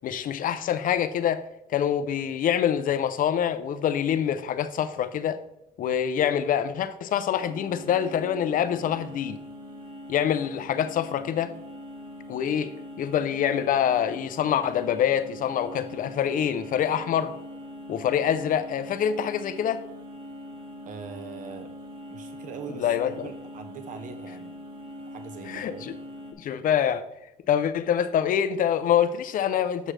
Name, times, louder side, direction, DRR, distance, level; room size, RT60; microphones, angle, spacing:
voice 1, 0.0-1.4 1.7-5.4 5.8-9.4 10.1-11.5 12.3-17.3 17.9-19.8 22.7-23.3 25.5-25.9 26.4-27.0 27.5-29.9, left 9 dB, 55° left, 0.6 m, -25 dB
sound 1, 7.4-26.3, left 1 dB, 30° right, 1.4 m, -42 dB
voice 2, 20.9-21.7 22.1-24.6 25.1-25.9, right 6 dB, 50° right, 0.7 m, -41 dB
7.5 x 6.2 x 3.3 m
cardioid pair, 110°, 17 cm